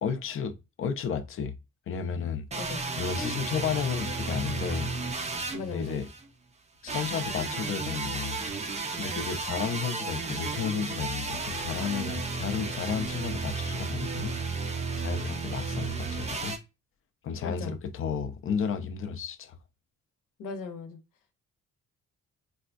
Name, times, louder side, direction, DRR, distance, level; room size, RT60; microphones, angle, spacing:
voice 1, 0.0-1.5 1.9-2.5 3.0-4.9 5.6-6.1 6.8-8.4 9.0-14.4 15.0-16.6 17.2-19.6, left 7 dB, 45° left, 0.5 m, -32 dB
sound 1, 2.5-6.2 6.9-16.6, right 3 dB, 20° right, 0.4 m, -33 dB
voice 2, 5.5-6.0 17.4-17.8 20.4-21.0, left 4 dB, 90° left, 0.8 m, -37 dB
4.0 x 2.2 x 2.5 m
cardioid pair, 130°, 31 cm